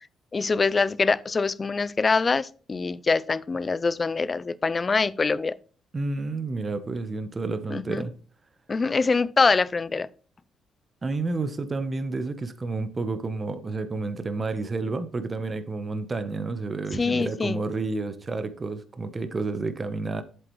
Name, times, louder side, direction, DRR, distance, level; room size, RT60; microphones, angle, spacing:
voice 1, 0.3-5.6 7.7-8.0 8.7-10.1 16.9-17.6, left 4 dB, 30° left, 0.4 m, -24 dB
voice 2, 5.9-8.1 11.0-20.2, right 3 dB, 30° right, 0.9 m, -30 dB
7.9 x 7.5 x 3.2 m
cardioid pair, 90°, 0 cm